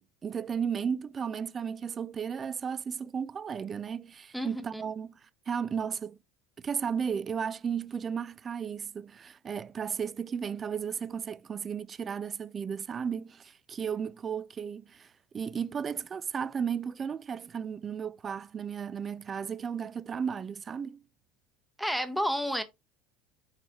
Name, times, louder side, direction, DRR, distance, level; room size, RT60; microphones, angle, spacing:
voice 1, 0.0-5.2 5.5-6.2 6.6-21.0, right 7 dB, 30° right, 0.3 m, -34 dB
voice 2, 4.3-4.8 21.8-22.6, equal, ahead, 0.8 m, -30 dB
4.4 x 4.0 x 2.9 m
hypercardioid pair, 80°, 0 cm